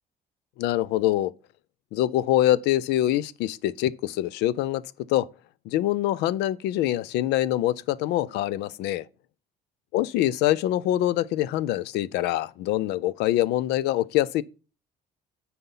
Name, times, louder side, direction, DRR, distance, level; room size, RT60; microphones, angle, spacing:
voice 1, 0.6-1.3 1.9-4.8 5.1-5.3 5.7-9.0 9.9-14.4, left 14 dB, 85° left, 0.4 m, -24 dB
9.5 x 4.2 x 5.5 m
cardioid pair, 110°, 17 cm